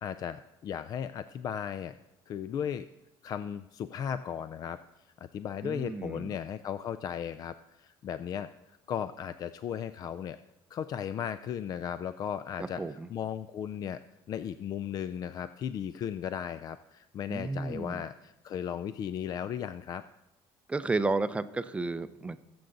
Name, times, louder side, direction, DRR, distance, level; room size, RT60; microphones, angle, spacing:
voice 1, 0.0-2.0 2.3-2.8 3.2-4.8 5.3-10.4 10.7-14.0 14.3-20.0, left 8 dB, 45° left, 13 dB, 0.4 m, -36 dB
voice 2, 5.6-6.3 12.6-13.1 17.3-18.0 20.7-22.4, right 3 dB, 10° right, 12 dB, 0.5 m, -32 dB
21.0 x 7.8 x 3.9 m, 1.0 s
cardioid pair, 130°, 9 cm